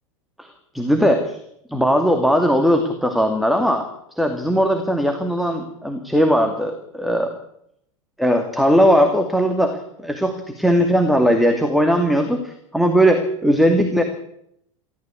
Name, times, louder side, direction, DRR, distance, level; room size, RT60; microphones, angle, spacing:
voice 1, 0.4-1.4 1.7-7.3 8.2-14.0, equal, ahead, 5 dB, 2.5 m, -19 dB
20.0 x 15.0 x 8.6 m, 0.75 s
figure-of-eight pair, 90°, 17 cm